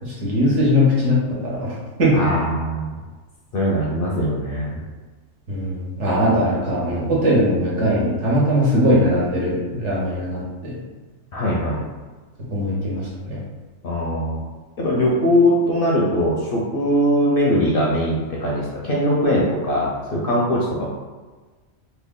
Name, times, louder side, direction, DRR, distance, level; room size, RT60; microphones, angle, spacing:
voice 1, 0.0-2.3 5.5-10.8 12.5-13.4, equal, 65° right, -6 dB, 1.4 m, -20 dB
voice 2, 2.1-2.9 3.5-4.8 11.3-11.8 13.8-14.4 14.8-20.9, equal, 55° left, -4 dB, 0.7 m, -21 dB
3.2 x 2.3 x 3.6 m, 1.3 s
omnidirectional pair, 1.4 m